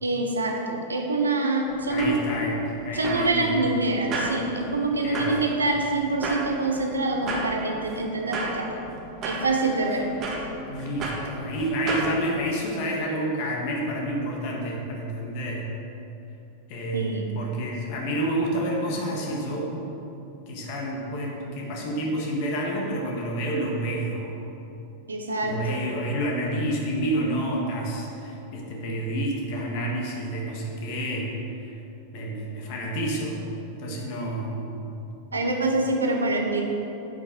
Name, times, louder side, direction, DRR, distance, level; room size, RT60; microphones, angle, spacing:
voice 1, 0.0-2.2 2.9-8.8 9.2-10.1 16.9-17.3 25.1-25.9 35.3-36.6, right 2 dB, 75° right, 2 dB, 1.1 m, -25 dB
sound 1, 1.7-12.1, right 2 dB, 30° right, 1.6 m, -34 dB
voice 2, 1.9-3.7 5.0-5.3 10.7-15.7 16.7-19.7 20.5-24.4 25.4-31.4 32.1-33.4 33.8-35.1 35.3-35.8, right 1 dB, 45° left, -1 dB, 1.8 m, -29 dB
9.1 x 5.8 x 6.3 m, 3.0 s
figure-of-eight pair, 90°, 0 cm